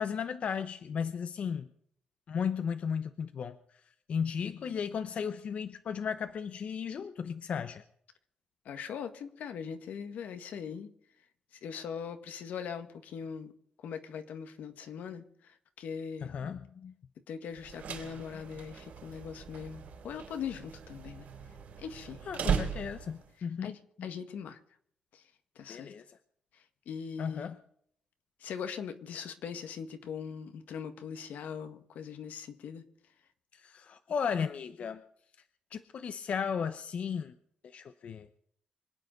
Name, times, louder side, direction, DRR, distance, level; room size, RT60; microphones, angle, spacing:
voice 1, 0.0-1.7 2.3-3.6 4.1-7.8 16.2-16.9 22.3-24.1 25.7-26.2 27.2-27.6 33.5-35.0 35.7-37.3 37.7-38.3, left 7 dB, 50° left, 10 dB, 0.8 m, -35 dB
voice 2, 8.6-10.9 11.6-13.5 13.8-16.3 17.3-21.3 21.8-22.2 23.6-24.6 25.1-25.2 25.5-25.9 26.5-27.5 28.4-32.8, left 7 dB, 80° left, 8 dB, 1.7 m, -41 dB
sound 1, 17.6-23.3, right 7 dB, 75° right, 4.1 m, -38 dB
25.5 x 9.1 x 5.4 m, 0.66 s
cardioid pair, 145°, 3 cm